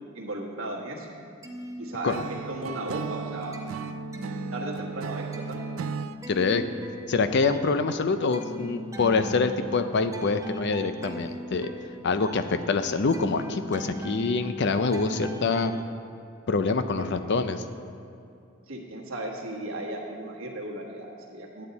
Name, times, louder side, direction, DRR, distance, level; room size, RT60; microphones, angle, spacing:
voice 1, 0.1-1.1 1.8-3.6 4.5-5.6 17.0-17.1 18.7-21.7, right 1 dB, 85° right, 0 dB, 1.4 m, -36 dB
sound 1, 1.2-2.6 3.0-15.8, left 1 dB, 15° right, 0.6 m, -40 dB
Acoustic guitar / Strum, 2.1-6.2, right 6 dB, 70° right, 0.3 m, -36 dB
voice 2, 6.3-6.6 7.1-11.7 12.0-15.7 16.5-17.6, left 4 dB, 55° left, 10 dB, 0.5 m, -25 dB
9.5 x 8.9 x 4.0 m, 2.5 s
head